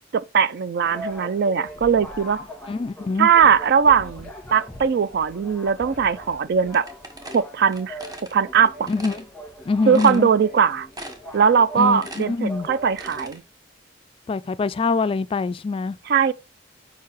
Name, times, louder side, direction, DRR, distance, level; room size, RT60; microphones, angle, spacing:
voice 1, 0.1-2.4 3.2-6.8 7.3-8.0 8.3-8.9 9.9-10.9 11.3-13.4 16.1-16.3, right 7 dB, 60° right, 0.4 m, -20 dB
sound 1, 0.8-13.4, equal, 5° left, 1.9 m, -40 dB
voice 2, 2.7-3.3 8.9-9.2 9.7-10.3 11.8-12.7 14.3-16.0, left 4 dB, 30° left, 0.3 m, -24 dB
sound 2, 6.7-8.3 8.9-9.2 9.6-9.7 9.9-10.6 10.9-11.4 11.7-13.4, right 1 dB, 20° right, 1.0 m, -39 dB
4.7 x 4.6 x 4.6 m
head